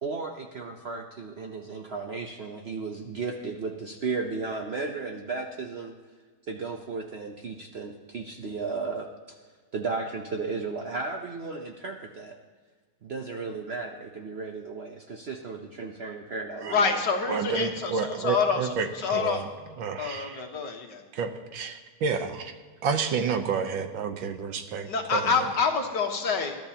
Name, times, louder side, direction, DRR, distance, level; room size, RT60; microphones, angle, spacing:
voice 1, 0.0-5.9 6.5-9.4 9.7-12.4 13.0-17.0, right 4 dB, 90° right, 3 dB, 0.5 m, -34 dB
voice 2, 16.7-18.6 19.0-19.4 20.0-21.0 24.9-26.6, left 5 dB, 55° left, 3 dB, 1.9 m, -27 dB
voice 3, 17.3-19.5 19.8-20.4 21.1-22.5 22.8-25.5, right 6 dB, 70° right, 7 dB, 1.6 m, -30 dB
21.0 x 12.5 x 2.9 m, 1.5 s
omnidirectional pair, 2.3 m